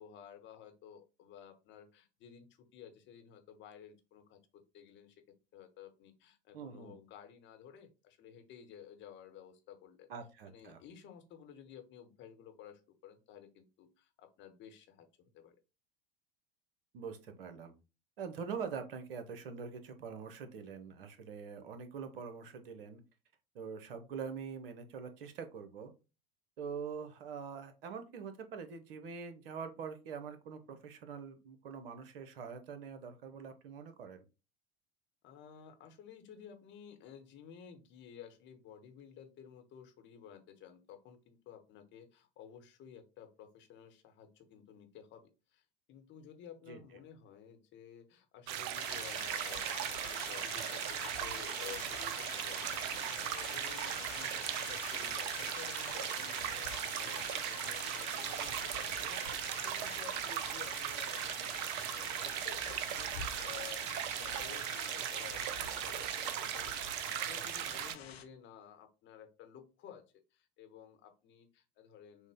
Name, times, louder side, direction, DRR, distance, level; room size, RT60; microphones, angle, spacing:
voice 1, 0.0-4.4 4.7-5.2 5.5-10.1 10.4-15.6 35.2-61.6 61.9-63.9 64.1-70.0 70.3-72.3, left 9 dB, 35° left, 6 dB, 1.0 m, -54 dB
voice 2, 6.5-7.0 10.1-10.8 16.9-17.7 18.2-23.0 23.5-25.9 26.6-34.2 46.7-46.8, right 6 dB, 60° right, 8 dB, 0.9 m, -44 dB
sound 1, 48.5-68.0, right 11 dB, 40° right, 0.4 m, -38 dB
sound 2, 48.7-68.2, left 7 dB, 75° left, 0.7 m, -47 dB
6.2 x 2.1 x 3.5 m, 0.30 s
figure-of-eight pair, 75°, 31 cm